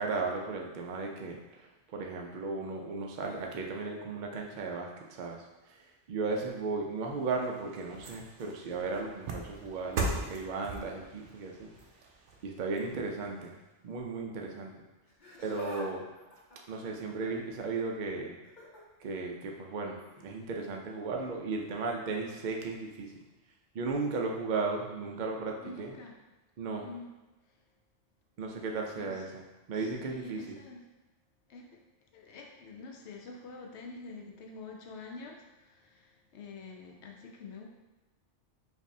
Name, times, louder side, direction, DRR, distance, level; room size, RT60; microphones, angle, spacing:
voice 1, 0.0-5.8 6.1-11.7 12.4-14.7 15.4-16.0 16.7-18.4 19.0-23.1 23.7-26.0 26.6-26.9 28.4-29.4 29.7-30.6, right 3 dB, 55° right, 1 dB, 0.6 m, -35 dB
sound 1, 7.0-13.5 13.9-14.0, right 2 dB, 85° right, 0.9 m, -40 dB
Laughter, 15.0-15.9 16.2-17.5 18.4-18.8 20.1-20.3 21.2-21.3, left 2 dB, 45° left, 0.9 m, -47 dB
voice 2, 25.6-26.1 26.8-27.1 29.0-29.2 29.7-30.8 31.5-31.8 32.1-37.7, left 3 dB, 70° left, 1 dB, 0.9 m, -47 dB
5.0 x 2.6 x 2.7 m, 1.1 s
omnidirectional pair, 1.2 m